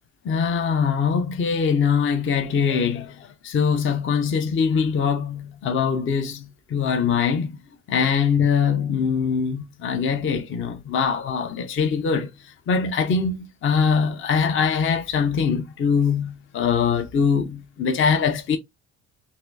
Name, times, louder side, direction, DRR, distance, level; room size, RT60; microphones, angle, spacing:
voice 1, 0.2-7.6 7.9-18.6, left 6 dB, 35° left, 0.6 m, -22 dB
4.1 x 2.5 x 2.6 m
supercardioid pair, 90°, 36 cm